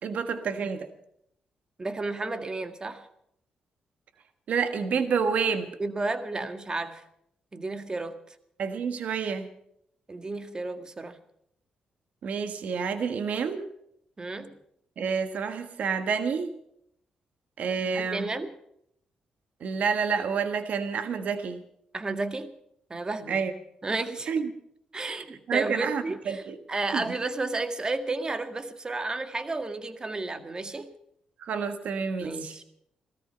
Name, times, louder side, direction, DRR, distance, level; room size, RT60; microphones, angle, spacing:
voice 1, 0.0-0.9 4.5-5.7 8.6-9.5 12.2-13.6 15.0-16.5 17.6-18.3 19.6-21.6 23.3-23.5 24.3-24.5 25.1-25.2 25.5-26.6 26.9-27.1 31.4-32.5, right 6 dB, 70° right, 9 dB, 1.4 m, -29 dB
voice 2, 1.8-3.0 5.8-7.0 7.5-8.3 10.1-11.2 14.2-14.5 17.9-18.5 21.9-22.5 22.9-23.4 23.8-24.3 24.9-26.4 26.7-30.9 32.2-32.6, right 3 dB, 30° right, 9 dB, 1.7 m, -32 dB
17.5 x 14.0 x 5.7 m, 0.73 s
cardioid pair, 65°, 3 cm